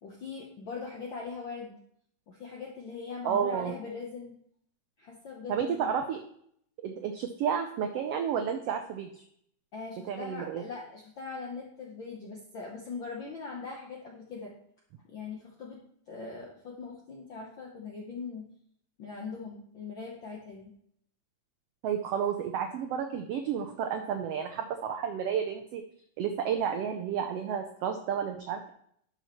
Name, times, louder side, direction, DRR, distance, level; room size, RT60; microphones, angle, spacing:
voice 1, 0.0-1.8 2.3-4.4 5.0-5.9 9.7-14.5 15.1-15.8 16.1-18.5 19.0-20.7, left 4 dB, 70° left, -2 dB, 1.1 m, -41 dB
voice 2, 3.2-3.7 5.5-6.2 6.8-9.2 10.1-10.6 21.8-25.8 26.2-28.7, right 8 dB, 90° right, 5 dB, 1.3 m, -31 dB
11.5 x 5.5 x 3.0 m, 0.67 s
omnidirectional pair, 3.5 m